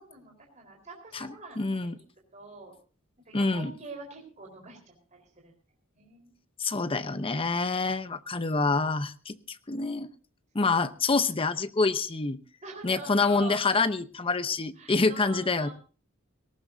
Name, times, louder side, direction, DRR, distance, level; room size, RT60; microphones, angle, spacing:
voice 1, 0.0-1.6 2.0-2.1 2.3-2.7 3.2-5.5 5.9-6.3 10.6-10.8 12.6-13.6 14.8-15.7, right 3 dB, 35° right, 1 dB, 4.2 m, -45 dB
voice 2, 1.1-2.0 3.3-3.7 6.6-10.1 10.5-12.4 12.8-15.7, left 3 dB, 25° left, 12 dB, 0.8 m, -27 dB
18.5 x 18.0 x 2.7 m, 0.37 s
head